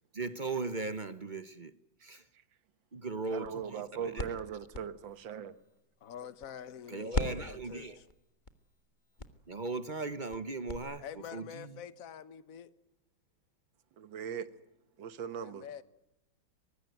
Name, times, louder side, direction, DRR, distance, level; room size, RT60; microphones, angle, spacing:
voice 1, 0.1-1.7 2.0-2.3 2.9-4.3 6.9-8.0 9.5-11.0 11.3-11.8, right 3 dB, 40° right, 0.7 m, -38 dB
sound 1, 3.2-6.8 7.1-10.8, left 2 dB, 25° left, 1.5 m, -41 dB
voice 2, 3.3-5.5 14.0-14.5 15.0-15.8, right 8 dB, 70° right, 2.0 m, -39 dB
voice 3, 6.0-8.0 11.0-12.7 15.3-15.8, left 8 dB, 50° left, 1.4 m, -46 dB
24.5 x 20.5 x 9.2 m
omnidirectional pair, 2.2 m